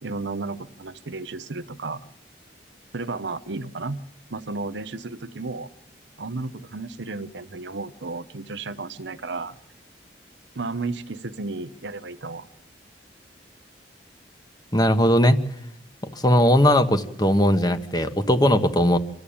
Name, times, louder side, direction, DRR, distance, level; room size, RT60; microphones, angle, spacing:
voice 1, 0.0-2.0 2.9-4.0 4.3-5.7 6.2-9.6 10.5-12.5, right 3 dB, 90° right, 11 dB, 0.9 m, -33 dB
voice 2, 14.7-15.5 16.0-19.0, left 1 dB, 25° left, 9 dB, 1.2 m, -19 dB
26.0 x 13.5 x 8.7 m, 0.82 s
head